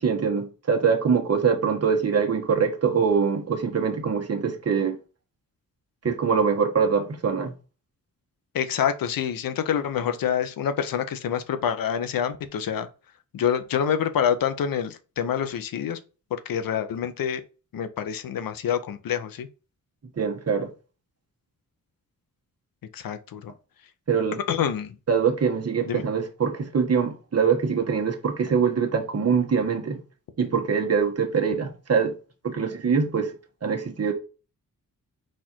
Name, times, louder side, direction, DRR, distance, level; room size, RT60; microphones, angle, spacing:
voice 1, 0.0-5.0 6.0-7.5 20.2-20.7 24.1-24.4 25.1-30.0 30.4-32.1 32.4-33.3 33.6-34.1, right 6 dB, 45° right, 1.1 m, -23 dB
voice 2, 8.5-12.9 13.3-16.0 16.3-17.4 17.7-19.5 22.9-23.5 24.5-25.0 25.9-26.0, left 8 dB, 75° left, 0.6 m, -27 dB
4.2 x 2.5 x 4.3 m
cardioid pair, 80°, 35 cm